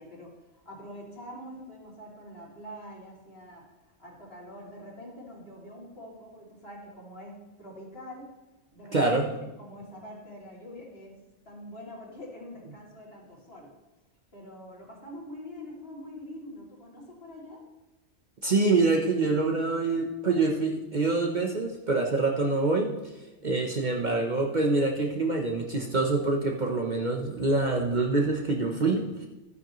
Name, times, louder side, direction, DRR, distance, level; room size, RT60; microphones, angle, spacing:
voice 1, 0.0-8.3 8.7-11.1 11.4-13.7 14.3-17.6, left 1 dB, 55° left, -4 dB, 3.0 m, -45 dB
voice 2, 8.9-9.3 18.4-23.1 23.4-29.3, right 3 dB, 40° right, 1 dB, 0.9 m, -26 dB
13.5 x 9.5 x 3.1 m, 1.0 s
omnidirectional pair, 1.2 m